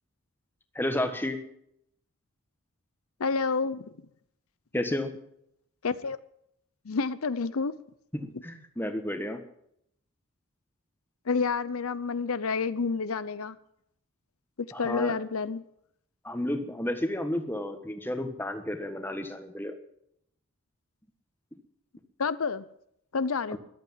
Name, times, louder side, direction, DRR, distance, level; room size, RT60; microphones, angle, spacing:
voice 1, 0.7-1.4 4.7-5.1 8.1-9.4 14.7-15.1 16.2-19.8 23.5-23.6, left 1 dB, 10° left, 1.4 m, -32 dB
voice 2, 3.2-3.9 5.8-6.2 6.9-7.7 11.3-13.6 14.8-15.6 22.2-22.6 23.1-23.6, left 4 dB, 75° left, 0.7 m, -29 dB
14.0 x 12.0 x 7.4 m
head